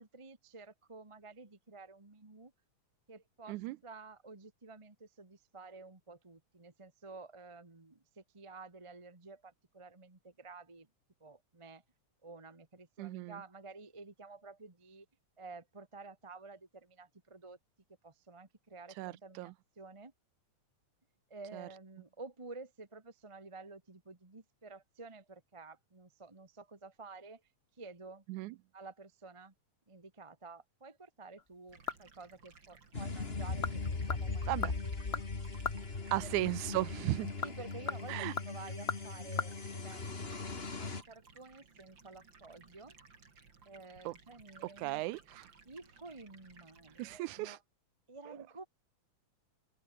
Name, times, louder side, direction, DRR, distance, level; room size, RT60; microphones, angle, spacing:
voice 1, 0.0-2.5 3.1-10.9 11.2-11.8 12.2-15.0 15.4-17.6 18.0-20.1 21.3-27.4 27.7-28.2 28.7-29.5 29.9-34.4 35.1-35.4 36.2-36.3 36.6-36.8 37.4-43.0 43.6-45.0 45.6-47.6 48.1-48.7, right 3 dB, 15° right, 1.2 m, -52 dB
voice 2, 13.0-13.4 19.0-19.5 21.5-21.7 28.3-28.6 34.5-34.7 36.1-37.3 38.1-38.3 44.1-44.2 44.8-45.5 47.0-47.6 48.3-48.4, right 19 dB, 85° right, 2.0 m, -36 dB
sound 1, 31.4-32.3 32.6-32.7 33.4-33.8 34.1-35.9 37.2-39.5 39.8-39.9, left 5 dB, 50° left, 0.7 m, -39 dB
Stream, 31.7-47.2, right 4 dB, 40° right, 3.8 m, -60 dB
sound 2, 32.9-41.0, left 4 dB, 25° left, 1.9 m, -39 dB
omnidirectional pair, 3.5 m